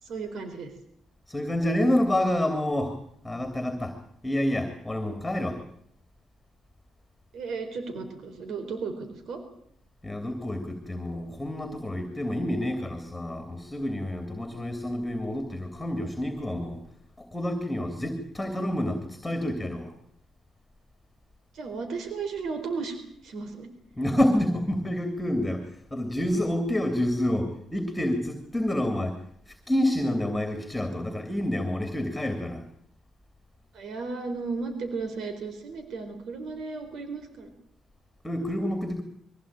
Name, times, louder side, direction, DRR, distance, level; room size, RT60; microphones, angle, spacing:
voice 1, 0.0-0.7 7.3-9.4 21.5-23.0 23.2-23.7 33.7-37.5, right 4 dB, 70° right, 8 dB, 4.0 m, -34 dB
voice 2, 1.3-2.9 3.2-3.9 4.2-5.6 10.0-16.8 17.2-19.9 24.0-25.6 25.9-29.2 29.7-32.6 38.2-39.0, left 1 dB, 10° left, 6 dB, 2.9 m, -28 dB
22.5 x 16.0 x 8.8 m, 0.71 s
cardioid pair, 90°, 0 cm